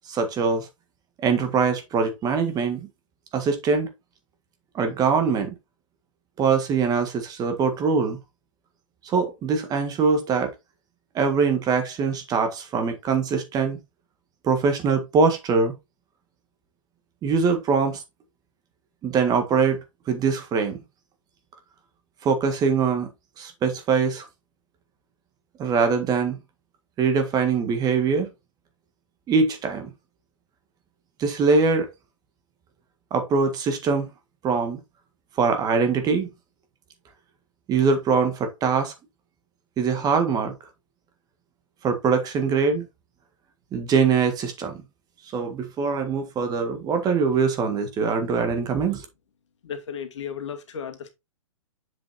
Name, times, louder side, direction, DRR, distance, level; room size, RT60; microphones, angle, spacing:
voice 1, 0.1-0.7 1.2-2.9 3.3-3.9 4.7-5.5 6.4-8.2 9.0-10.5 11.1-13.8 14.4-15.7 17.2-18.0 19.0-19.8 20.1-20.8 22.2-23.1 23.4-24.2 25.6-26.4 27.0-28.3 29.3-29.9 31.2-31.9 33.1-34.1 34.4-34.8 35.4-36.3 37.7-38.9 39.8-40.5 41.8-42.9 43.7-44.8 45.3-49.0, right 5 dB, 25° right, 1.7 m, -23 dB
voice 2, 49.6-51.1, left 7 dB, 60° left, 2.0 m, -34 dB
7.6 x 6.1 x 2.7 m
figure-of-eight pair, 115°, 17 cm